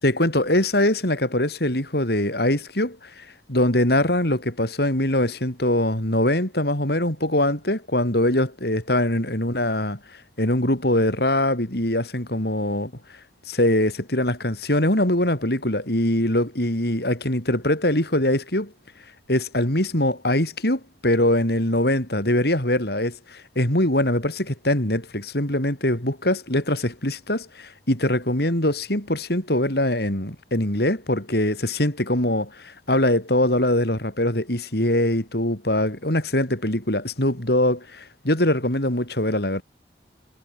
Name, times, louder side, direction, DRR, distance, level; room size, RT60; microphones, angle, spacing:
voice 1, 0.0-10.0 10.4-12.9 13.5-18.7 19.3-39.6, left 1 dB, 60° left, 5.3 m, -22 dB
head